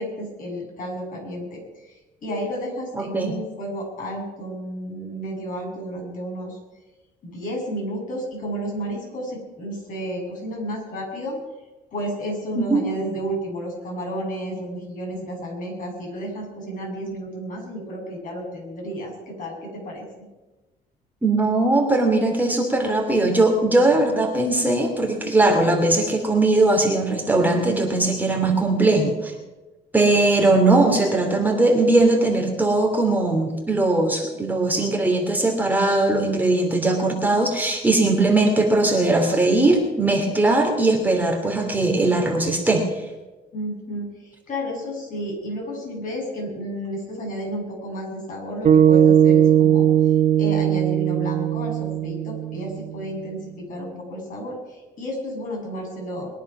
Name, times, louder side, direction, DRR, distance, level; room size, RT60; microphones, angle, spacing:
voice 1, 0.0-6.6 7.2-11.4 11.9-20.3 43.5-49.9 50.4-56.3, equal, 50° left, -1 dB, 7.4 m, -32 dB
voice 2, 3.0-3.3 12.6-12.8 21.2-29.3 29.9-42.8, right 2 dB, 10° right, 1 dB, 2.7 m, -20 dB
sound 1, 48.6-53.0, right 9 dB, 40° right, 2.3 m, -18 dB
22.0 x 10.5 x 6.0 m, 1.1 s
cardioid pair, 110°, 17 cm